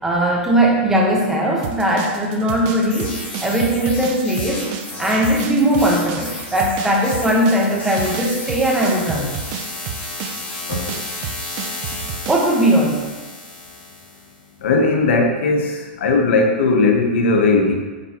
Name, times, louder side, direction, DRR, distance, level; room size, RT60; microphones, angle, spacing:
voice 1, 0.0-3.1 3.4-4.6 5.0-9.3 12.3-13.0, right 1 dB, 5° right, -2 dB, 0.9 m, -19 dB
sound 1, 1.6-12.5, right 8 dB, 40° right, 0.6 m, -31 dB
sound 2, 2.9-14.3, left 2 dB, 25° left, 1.7 m, -33 dB
voice 2, 14.6-17.7, left 3 dB, 75° left, 3 dB, 1.0 m, -17 dB
9.2 x 3.6 x 2.9 m, 1.3 s
supercardioid pair, 155°, 6 cm